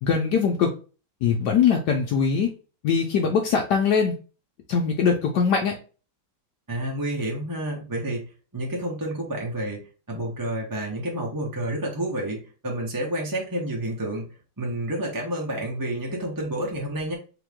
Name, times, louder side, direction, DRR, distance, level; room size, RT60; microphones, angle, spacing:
voice 1, 0.0-0.7 1.2-2.5 2.8-4.1 4.7-5.7, left 6 dB, 70° left, 1 dB, 1.2 m, -21 dB
voice 2, 6.7-9.8 10.1-14.3 14.6-17.1, right 1 dB, 20° right, -2 dB, 0.6 m, -29 dB
3.9 x 2.9 x 3.5 m, 0.35 s
omnidirectional pair, 2.0 m